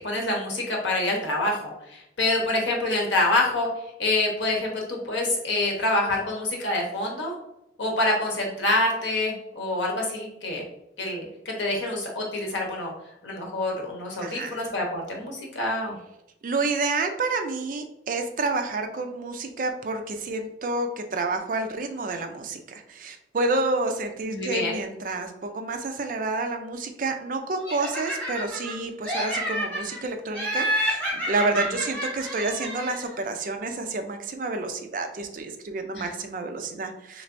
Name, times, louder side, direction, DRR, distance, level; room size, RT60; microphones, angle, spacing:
voice 1, 0.0-3.7 4.0-7.3 7.8-10.6 11.0-12.9 13.2-16.0 24.2-24.7 35.9-36.1, left 2 dB, 80° left, -1 dB, 1.0 m, -26 dB
voice 2, 14.2-14.6 16.4-37.2, right 3 dB, 45° right, 6 dB, 0.4 m, -29 dB
Laughter, 27.6-28.7 29.0-30.0 30.3-33.1, equal, 10° left, 0.9 m, -29 dB
3.3 x 3.1 x 2.5 m, 0.86 s
head